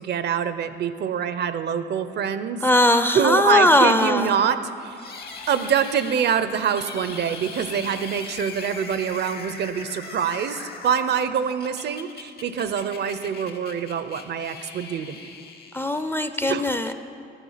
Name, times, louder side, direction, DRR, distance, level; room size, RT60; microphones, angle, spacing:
voice 1, 0.0-2.6 3.1-5.1 5.5-15.2 16.5-16.9, right 7 dB, 60° right, 12 dB, 0.5 m, -25 dB
voice 2, 2.6-4.3 15.7-16.9, left 1 dB, 10° left, 9 dB, 0.4 m, -19 dB
sound 1, 5.0-16.3, left 4 dB, 50° left, 1.0 m, -40 dB
10.0 x 7.1 x 5.7 m, 2.5 s
cardioid pair, 90°, 20 cm